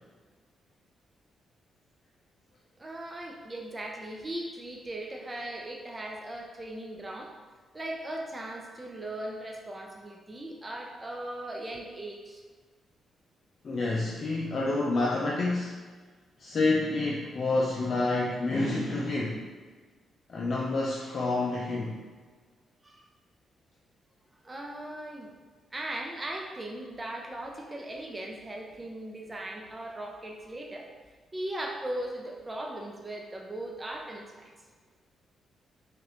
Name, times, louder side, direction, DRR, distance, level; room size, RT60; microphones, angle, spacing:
voice 1, 2.8-7.3 7.7-12.4 22.8-23.0 24.4-25.3 25.7-30.9 31.3-34.5, right 1 dB, 25° right, 1 dB, 0.6 m, -38 dB
voice 2, 13.6-15.8 16.4-19.5 20.3-22.0, left 2 dB, 55° left, -4 dB, 0.5 m, -28 dB
4.7 x 2.5 x 3.0 m, 1.4 s
supercardioid pair, 65°, 0 cm